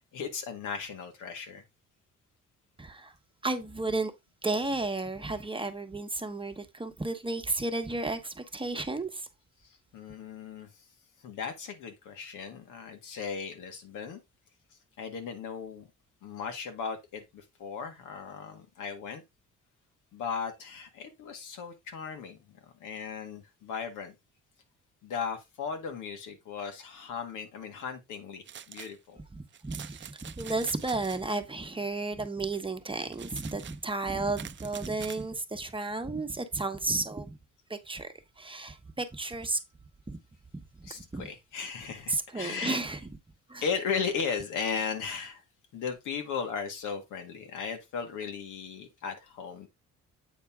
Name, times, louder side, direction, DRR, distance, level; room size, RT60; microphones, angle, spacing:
voice 1, 0.1-1.6 9.6-10.7 11.2-14.2 15.0-15.9 16.2-19.2 20.1-24.2 25.0-29.2 40.8-42.8 43.6-45.4 45.7-49.7, left 6 dB, 85° left, 1.8 m, -36 dB
voice 2, 2.8-3.1 3.4-4.1 4.4-9.3 29.3-37.4 37.7-38.1 38.4-39.6 40.1-40.2 40.5-41.3 42.1-43.1 43.5-43.6, right 3 dB, 15° right, 1.1 m, -33 dB
sound 1, 28.5-29.0 29.5-31.4 33.1-35.2, right 9 dB, 40° right, 0.5 m, -46 dB
8.2 x 4.4 x 3.6 m
cardioid pair, 90°, 30 cm